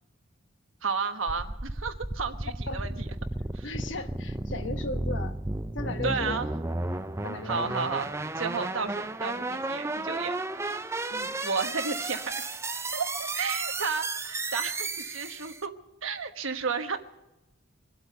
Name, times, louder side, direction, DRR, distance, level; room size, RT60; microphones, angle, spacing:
voice 1, 0.8-2.9 3.5-3.7 6.0-6.5 7.4-8.1 8.4-10.3 11.4-12.4 12.9-15.7 16.0-17.0, right 5 dB, 90° right, 7 dB, 1.3 m, -32 dB
sound 1, 1.3-15.7, right 2 dB, 15° right, 0.4 m, -33 dB
voice 2, 2.7-3.0 3.6-5.4 5.7-6.4 7.2-7.8 11.1-11.4, left 3 dB, 65° left, 7 dB, 1.3 m, -37 dB
24.0 x 8.2 x 6.7 m, 0.96 s
head